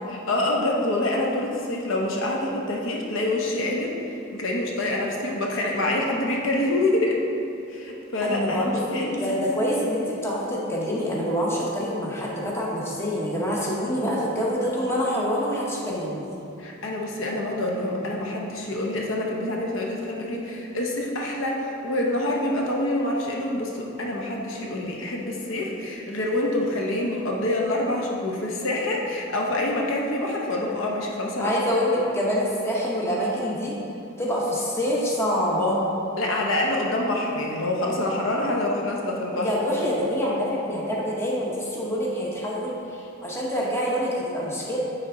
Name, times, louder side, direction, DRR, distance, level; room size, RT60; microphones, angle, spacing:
voice 1, 0.1-3.9 4.3-7.2 7.7-9.7 16.6-31.6 36.2-39.5, left 1 dB, 70° left, -1 dB, 0.7 m, -26 dB
voice 2, 8.2-16.2 31.4-33.8 34.2-35.8 39.3-44.8, equal, 15° left, -5 dB, 1.0 m, -26 dB
9.4 x 3.4 x 3.7 m, 2.8 s
head